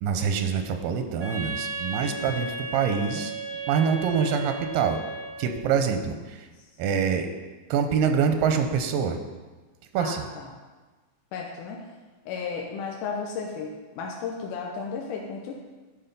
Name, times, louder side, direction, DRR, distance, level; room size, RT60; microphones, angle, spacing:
voice 1, 0.0-3.3 3.7-5.0 5.4-6.5 6.8-7.3 7.7-9.2 9.9-10.3, right 6 dB, 90° right, 6 dB, 2.4 m, -25 dB
Wind instrument woodwind instrument, 1.2-5.6, right 3 dB, 50° right, 1.1 m, -35 dB
voice 2, 10.0-10.5 11.3-11.8 12.3-15.6, left 5 dB, 75° left, 0 dB, 2.2 m, -34 dB
10.0 x 5.3 x 5.4 m, 1.3 s
omnidirectional pair, 4.1 m